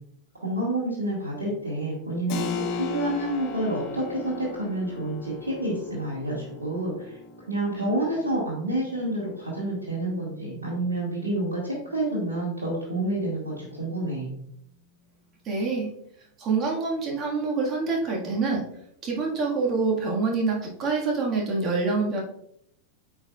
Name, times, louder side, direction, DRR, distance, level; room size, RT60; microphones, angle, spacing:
voice 1, 0.4-7.2 7.5-14.3, right 1 dB, 70° right, -7 dB, 1.9 m, -29 dB
Keyboard (musical), 2.3-12.7, left 4 dB, 40° left, 0.8 m, -38 dB
voice 2, 15.5-15.9 16.4-18.6 19.0-22.2, right 4 dB, 30° right, -1 dB, 1.7 m, -26 dB
8.6 x 4.9 x 2.4 m, 0.72 s
figure-of-eight pair, 90°, 0 cm